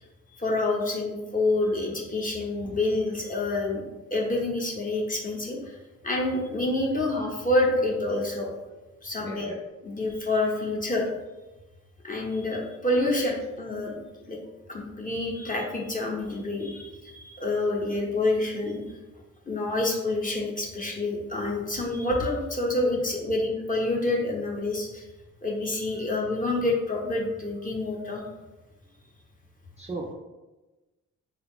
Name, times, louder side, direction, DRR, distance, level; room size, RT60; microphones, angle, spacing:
voice 1, 0.3-3.8 4.1-5.7 6.0-8.5 9.0-9.5 9.8-11.1 12.0-13.9 14.2-14.4 14.7-18.8 19.5-25.1 25.4-28.2, left 2 dB, 25° left, -2 dB, 0.8 m, -27 dB
voice 2, 9.2-9.6 10.7-10.9 15.4-15.5 17.9-18.0 18.4-18.5 25.9-26.0 27.0-27.2 27.5-27.7 29.8-30.1, right 2 dB, 20° right, -1 dB, 0.4 m, -41 dB
3.8 x 2.3 x 3.5 m, 1.1 s
wide cardioid pair, 110°, 32 cm